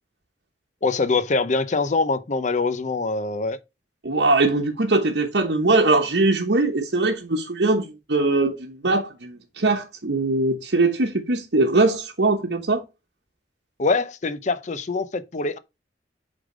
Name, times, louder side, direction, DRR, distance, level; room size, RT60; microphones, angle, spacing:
voice 1, 0.8-3.6 13.8-15.6, left 3 dB, 45° left, 0.7 m, -24 dB
voice 2, 4.0-12.8, right 2 dB, 70° right, 1.0 m, -21 dB
8.3 x 3.8 x 5.0 m
head